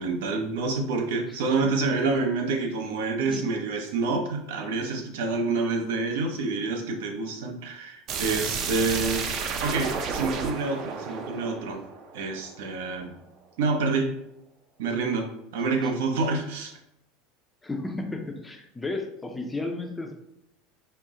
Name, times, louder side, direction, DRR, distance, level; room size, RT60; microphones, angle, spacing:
voice 1, 0.0-9.3 9.6-11.8 12.1-13.1 13.6-14.1 14.8-16.7, right 3 dB, 85° right, 3 dB, 0.7 m, -27 dB
sound 1, 8.1-12.8, right 5 dB, 40° right, 0.5 m, -32 dB
voice 2, 17.6-20.1, left 2 dB, 10° left, 3 dB, 0.5 m, -33 dB
4.3 x 2.1 x 3.6 m, 0.83 s
supercardioid pair, 145°, 0 cm